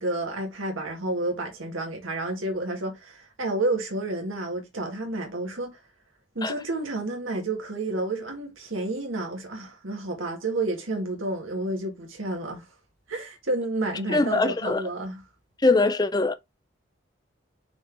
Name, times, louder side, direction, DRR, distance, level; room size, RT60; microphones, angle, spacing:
voice 1, 0.0-5.8 6.4-12.7 13.1-15.2, right 2 dB, 85° right, 1.9 m, -30 dB
voice 2, 14.1-14.8 15.6-16.3, left 3 dB, 20° left, 0.5 m, -22 dB
6.0 x 3.9 x 4.6 m
head